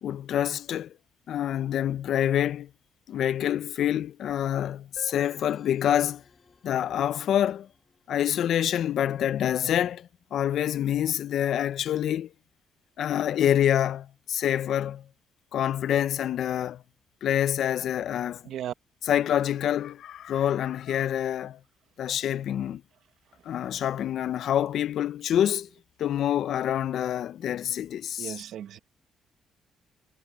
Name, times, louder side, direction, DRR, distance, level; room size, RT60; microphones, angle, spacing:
voice 1, 0.0-0.9 1.3-2.7 3.1-6.2 6.6-7.7 8.1-12.3 13.0-15.1 15.5-16.8 17.2-18.4 19.1-21.6 22.0-22.8 23.4-25.7 26.0-28.4, left 10 dB, 70° left, 0.6 m, -26 dB
sound 1, 5.0-8.5, left 5 dB, 35° left, 4.4 m, -53 dB
voice 2, 28.2-28.8, right 11 dB, 75° right, 1.3 m, -35 dB
cardioid pair, 90°, 0 cm